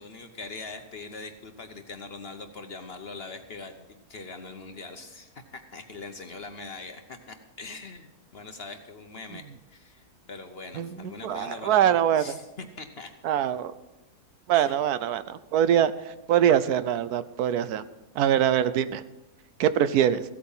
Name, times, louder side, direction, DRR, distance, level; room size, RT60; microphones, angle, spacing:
voice 1, 0.0-13.1 14.5-14.8, left 3 dB, 50° left, 7 dB, 0.9 m, -42 dB
voice 2, 11.2-12.2 13.2-13.7 14.5-15.9 16.3-17.8 18.2-19.0 19.6-20.2, right 10 dB, 75° right, 14 dB, 1.1 m, -23 dB
15.5 x 8.5 x 5.5 m, 1.0 s
omnidirectional pair, 1.7 m